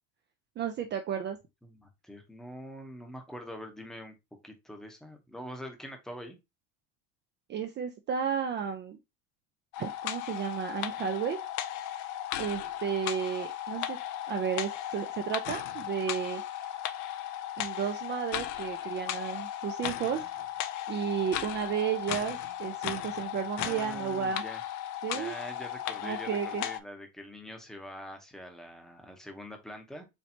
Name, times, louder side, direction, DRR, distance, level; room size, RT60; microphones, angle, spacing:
voice 1, 0.6-1.4 7.5-9.0 9.8-11.4 12.4-14.0 14.3-16.4 17.6-20.2 20.9-24.4 25.0-25.3 26.0-26.6, right 8 dB, 30° right, 0.4 m, -33 dB
voice 2, 1.6-4.1 4.4-6.4 23.6-24.6 25.1-30.1, equal, ahead, 0.8 m, -44 dB
sound 1, 9.7-26.8, left 11 dB, 55° left, 0.5 m, -36 dB
4.3 x 3.2 x 2.8 m
supercardioid pair, 115°, 36 cm